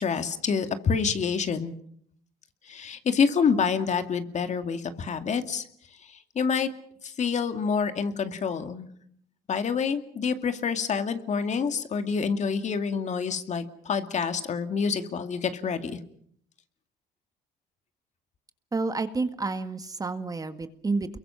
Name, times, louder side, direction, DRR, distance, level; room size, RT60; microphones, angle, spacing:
voice 1, 0.0-1.7 2.7-5.6 6.0-6.7 7.0-8.9 9.5-16.0, left 6 dB, 45° left, 8 dB, 2.4 m, -27 dB
voice 2, 18.7-21.2, right 3 dB, 20° right, 9 dB, 1.8 m, -30 dB
29.5 x 23.0 x 5.9 m, 0.63 s
cardioid pair, 110°, 17 cm